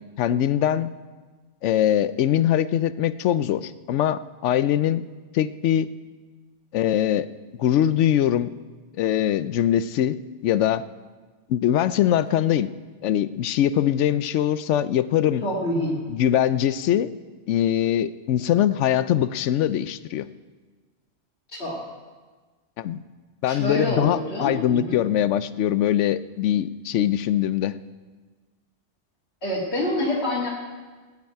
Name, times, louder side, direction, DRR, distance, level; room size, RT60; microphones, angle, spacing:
voice 1, 0.2-0.9 1.6-5.0 5.3-5.9 6.7-7.3 7.6-8.5 9.0-10.2 10.4-10.8 11.5-12.7 13.0-15.4 16.1-17.1 17.5-20.3 22.8-23.0 23.4-27.8, left 11 dB, 80° left, 15 dB, 0.9 m, -22 dB
voice 2, 15.4-16.0 21.5-21.8 23.5-25.0 29.4-30.5, left 1 dB, 55° left, -7 dB, 2.4 m, -26 dB
18.0 x 6.0 x 8.8 m, 1.4 s
omnidirectional pair, 1.2 m